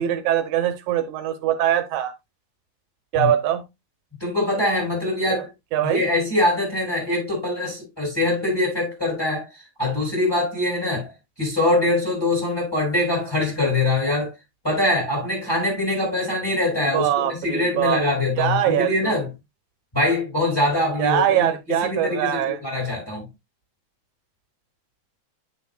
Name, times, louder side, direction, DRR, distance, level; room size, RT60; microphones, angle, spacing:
voice 1, 0.0-2.1 3.1-3.6 5.3-5.4 5.7-6.0 16.8-18.0 18.4-19.2 21.0-22.6, right 11 dB, 85° right, 2.2 m, -22 dB
voice 2, 4.2-5.5 5.8-11.1 11.4-14.3 14.6-19.3 19.9-21.5 21.8-23.3, left 2 dB, 10° left, 5.1 m, -23 dB
9.0 x 7.0 x 2.2 m
omnidirectional pair, 3.3 m